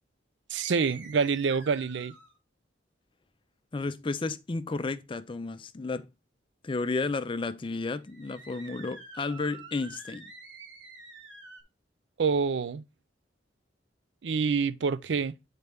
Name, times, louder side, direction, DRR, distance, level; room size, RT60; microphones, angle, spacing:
voice 1, 0.5-2.1 12.2-12.8 14.2-15.3, right 5 dB, 70° right, 0.5 m, -27 dB
sound 1, 0.5-2.4 8.0-11.6, right 3 dB, 90° right, 1.7 m, -48 dB
voice 2, 3.7-6.1 6.6-10.3, left 3 dB, 25° left, 0.4 m, -32 dB
9.2 x 4.1 x 3.5 m
head